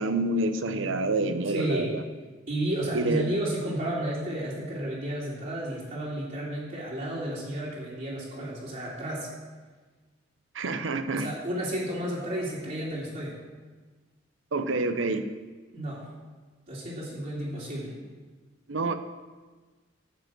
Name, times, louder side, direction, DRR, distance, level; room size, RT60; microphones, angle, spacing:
voice 1, 0.0-2.0 2.9-3.3 10.5-11.3 14.5-15.3 18.7-18.9, right 2 dB, 85° right, 9 dB, 0.8 m, -27 dB
voice 2, 1.5-2.0 2.5-9.3 11.1-13.3 15.7-16.0 16.7-17.9, right 1 dB, 45° right, -7 dB, 2.6 m, -32 dB
13.0 x 5.2 x 7.7 m, 1.3 s
head